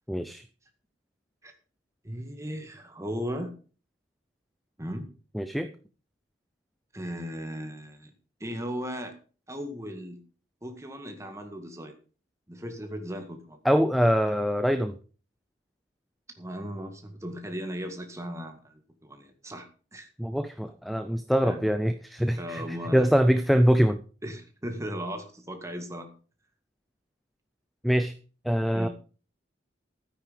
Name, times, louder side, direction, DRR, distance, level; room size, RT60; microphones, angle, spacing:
voice 1, 0.1-0.4 5.3-5.7 13.6-14.9 20.2-22.6 22.9-24.0 27.8-28.1 28.4-28.9, equal, ahead, 11 dB, 0.5 m, -23 dB
voice 2, 2.0-3.6 4.8-5.1 6.9-8.1 8.4-9.2 9.5-10.2 10.6-12.0 12.5-13.6 16.4-20.1 21.4-21.6 22.4-23.1 24.2-26.1 28.7-28.9, equal, 15° right, 6 dB, 1.8 m, -37 dB
12.5 x 9.5 x 5.1 m, 0.38 s
head